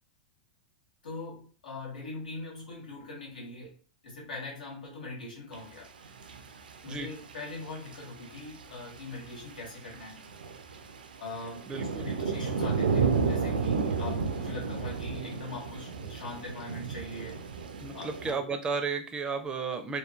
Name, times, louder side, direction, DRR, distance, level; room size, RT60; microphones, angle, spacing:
voice 1, 1.0-3.8 4.0-5.9 6.8-10.2 11.2-11.7 12.0-17.4 17.9-18.5, left 2 dB, 80° left, 1.4 m, -41 dB
sound 1, 5.5-5.6 6.0-7.3 7.6-18.3, right 5 dB, 90° right, 0.4 m, -32 dB
voice 2, 11.7-12.1 17.8-20.0, right 4 dB, 20° right, 0.5 m, -33 dB
3.1 x 2.3 x 2.3 m
hypercardioid pair, 110°, 5 cm